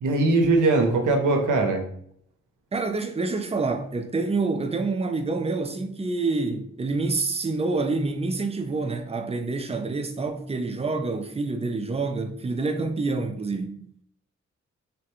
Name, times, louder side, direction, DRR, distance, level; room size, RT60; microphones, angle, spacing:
voice 1, 0.0-1.9, right 3 dB, 85° right, 0.6 m, -21 dB
voice 2, 2.7-13.8, right 3 dB, 20° right, 0.4 m, -27 dB
3.3 x 2.2 x 2.9 m
cardioid pair, 60°, 30 cm